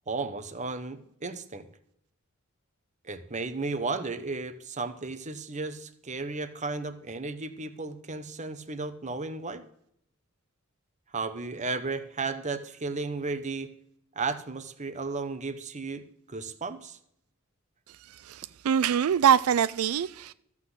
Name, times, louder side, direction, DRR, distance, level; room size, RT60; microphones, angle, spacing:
voice 1, 0.1-1.7 3.0-9.6 11.1-13.7 14.2-17.0, right 3 dB, 35° right, 1.0 m, -34 dB
voice 2, 18.1-20.3, right 8 dB, 90° right, 0.4 m, -24 dB
14.0 x 6.0 x 7.9 m
head